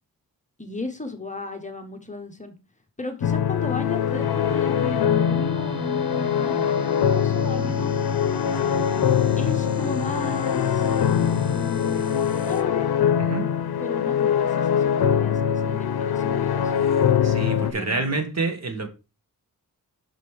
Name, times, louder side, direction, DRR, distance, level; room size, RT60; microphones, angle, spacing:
voice 1, 0.6-2.5 3.0-7.9 9.4-10.9 11.5-12.9 13.8-16.7 17.4-18.2, left 3 dB, 20° left, 1.0 m, -35 dB
sound 1, 3.2-17.7, left 8 dB, 85° left, 0.7 m, -23 dB
sound 2, 4.2-12.6, right 2 dB, 15° right, 1.1 m, -38 dB
voice 2, 13.2-13.5 17.2-18.9, right 3 dB, 45° right, 1.5 m, -27 dB
6.2 x 5.3 x 4.7 m
wide cardioid pair, 150°, 37 cm